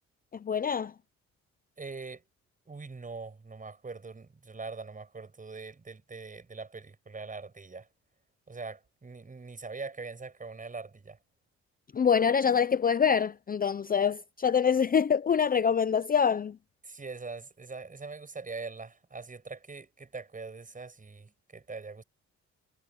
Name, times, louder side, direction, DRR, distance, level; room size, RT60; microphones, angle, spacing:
voice 1, 0.4-0.9 11.9-16.6, left 7 dB, 30° left, 0.6 m, -25 dB
voice 2, 1.8-2.2 2.7-7.9 8.5-11.2 16.8-22.0, right 4 dB, 25° right, 6.5 m, -42 dB
cardioid pair, 90°, 30 cm